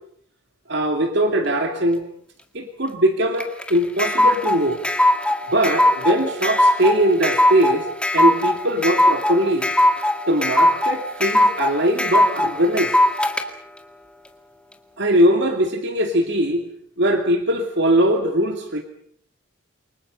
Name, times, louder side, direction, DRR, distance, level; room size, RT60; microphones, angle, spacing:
voice 1, 0.7-2.0 2.5-4.8 5.5-7.9 8.1-9.7 10.3-12.9 15.0-16.6 17.0-18.8, right 1 dB, 55° right, 5 dB, 2.5 m, -20 dB
sound 1, 3.4-13.4, left 1 dB, 5° left, 2.0 m, -19 dB
28.5 x 24.5 x 5.5 m, 0.63 s
head